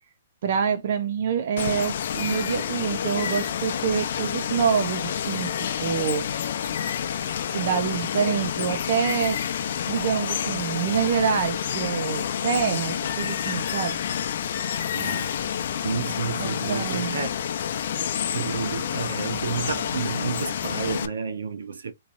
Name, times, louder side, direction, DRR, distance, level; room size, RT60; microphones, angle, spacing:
voice 1, 0.4-5.5 5.8-6.3 7.5-9.4 9.9-14.0 16.4-17.2, right 7 dB, 50° right, 0.6 m, -26 dB
Water, 1.6-21.1, left 9 dB, 55° left, 0.6 m, -29 dB
voice 2, 14.9-15.3 15.8-17.3 18.0-21.9, right 5 dB, 90° right, 1.0 m, -31 dB
4.1 x 3.1 x 2.5 m
hypercardioid pair, 165°, 0 cm